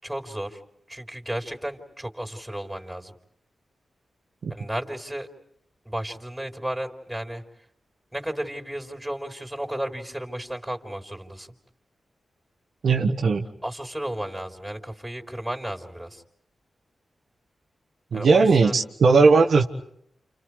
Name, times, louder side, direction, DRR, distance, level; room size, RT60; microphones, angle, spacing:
voice 1, 0.0-0.6 0.9-3.1 4.5-5.3 5.8-7.4 8.1-11.5 13.6-16.2 18.1-18.8, right 1 dB, 10° right, 3 dB, 3.9 m, -33 dB
voice 2, 12.8-13.4 18.1-19.6, right 4 dB, 75° right, 3 dB, 1.5 m, -18 dB
30.0 x 29.0 x 4.9 m, 0.71 s
cardioid pair, 60°, 0 cm